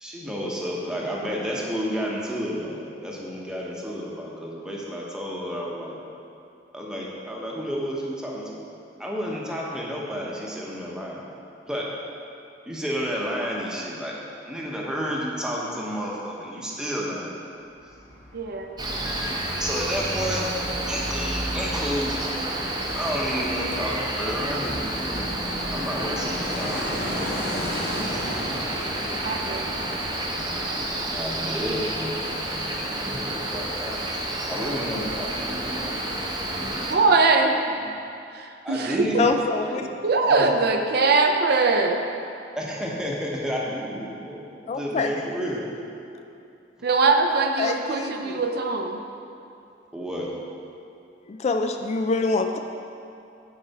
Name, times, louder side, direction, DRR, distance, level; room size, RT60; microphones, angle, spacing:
voice 1, 0.0-6.0 6.7-8.6 9.0-11.2 11.7-11.8 12.7-14.1 14.5-17.3 19.5-20.4 20.9-22.4 22.9-25.3 25.7-27.6 31.1-32.8 33.2-34.0 34.5-36.0 36.3-36.9 37.6-37.7 38.6-39.2 39.8-39.9 40.2-40.5 42.6-45.6 49.9-50.3, equal, 5° right, -4 dB, 1.0 m, -31 dB
Fixed-wing aircraft airplane, 17.6-34.6 34.9-35.0, equal, 75° left, 1.7 m, -37 dB
voice 2, 18.3-18.7 29.2-29.9 36.9-37.6 38.3-39.0 40.0-42.0 46.8-49.0, right 3 dB, 60° right, 4 dB, 0.5 m, -21 dB
Cricket, 18.8-37.0, right 1 dB, 25° right, 0.7 m, -30 dB
voice 3, 39.2-39.8 44.7-45.2 47.6-48.5 51.3-52.6, left 3 dB, 35° left, 5 dB, 0.3 m, -25 dB
9.1 x 4.8 x 4.2 m, 2.6 s
head